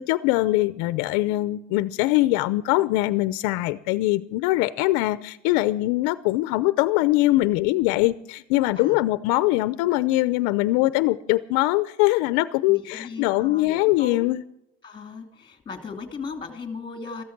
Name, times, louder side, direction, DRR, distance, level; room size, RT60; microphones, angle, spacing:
voice 1, 0.0-14.4, left 18 dB, 70° left, 15 dB, 0.7 m, -22 dB
voice 2, 12.7-14.3 14.8-17.2, left 4 dB, 15° left, 6 dB, 2.5 m, -37 dB
14.0 x 14.0 x 5.9 m, 0.79 s
cardioid pair, 140°, 32 cm